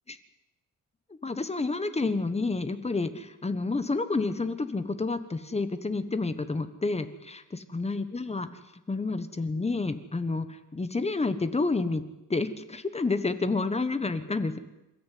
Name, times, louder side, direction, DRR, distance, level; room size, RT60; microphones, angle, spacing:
voice 1, 1.2-7.4 7.7-8.5 8.9-12.0 12.3-14.6, left 3 dB, 20° left, 11 dB, 1.2 m, -29 dB
27.5 x 13.5 x 9.3 m, 0.94 s
wide cardioid pair, 175°, 33 cm